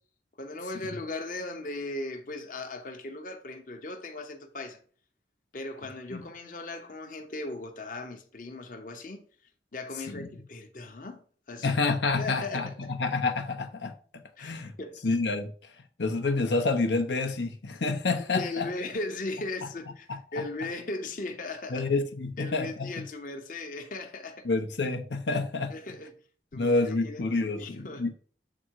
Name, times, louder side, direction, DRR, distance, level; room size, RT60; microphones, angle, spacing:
voice 1, 0.4-4.8 5.5-9.2 9.7-11.8 12.2-12.9 14.4-15.0 18.2-21.9 22.4-24.5 25.7-26.1 26.5-28.1, left 2 dB, 50° left, 0.8 m, -38 dB
voice 2, 11.6-13.9 14.4-14.7 15.0-15.5 16.0-18.7 21.7-23.0 24.4-25.7 26.5-28.1, left 3 dB, 90° left, 0.9 m, -28 dB
7.7 x 3.7 x 4.6 m
head